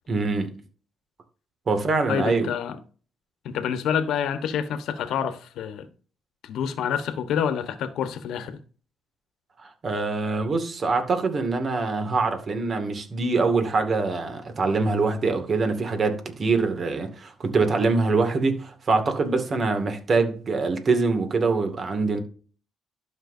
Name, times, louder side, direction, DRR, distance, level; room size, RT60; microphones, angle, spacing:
voice 1, 0.1-0.6 1.7-2.5 9.6-22.2, right 3 dB, 45° right, 2.2 m, -24 dB
voice 2, 2.1-2.8 3.4-5.9 6.4-8.6, left 8 dB, 80° left, 1.2 m, -27 dB
12.0 x 6.0 x 2.7 m
cardioid pair, 90°, 0 cm